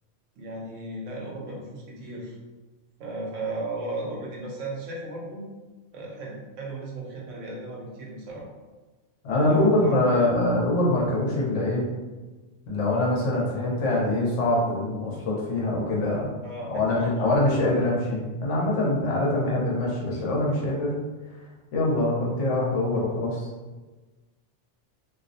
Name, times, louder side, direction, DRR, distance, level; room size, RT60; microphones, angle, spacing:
voice 1, 0.4-2.4 3.0-5.5 5.9-8.5 9.5-10.3 16.4-17.3, right 2 dB, 90° right, -2 dB, 1.0 m, -35 dB
voice 2, 9.2-11.8 12.7-16.3 16.7-20.9 21.7-23.5, left 1 dB, 80° left, -4 dB, 1.0 m, -24 dB
2.6 x 2.0 x 2.5 m, 1.2 s
omnidirectional pair, 1.2 m